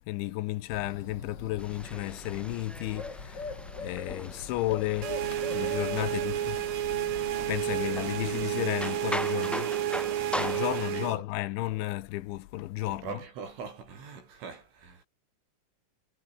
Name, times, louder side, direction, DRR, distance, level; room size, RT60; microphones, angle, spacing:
voice 1, 0.0-7.0 7.5-10.0 10.3-13.2, left 17 dB, 75° left, 3.4 m, -33 dB
Bird, 0.7-8.4, left 4 dB, 25° left, 3.6 m, -42 dB
sound 1, 1.6-11.0, equal, ahead, 3.8 m, -40 dB
sound 2, 5.0-11.2, right 11 dB, 60° right, 2.8 m, -31 dB
voice 2, 10.9-11.3 12.9-15.0, right 5 dB, 80° right, 9.3 m, -42 dB
omnidirectional pair, 5.5 m